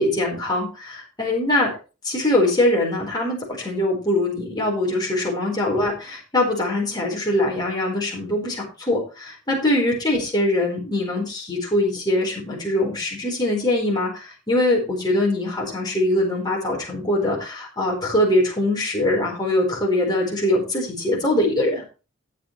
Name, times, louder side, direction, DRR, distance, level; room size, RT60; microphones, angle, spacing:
voice 1, 0.0-1.7 2.0-21.8, left 1 dB, 20° left, -3 dB, 4.5 m, -22 dB
14.0 x 8.7 x 3.2 m, 0.32 s
head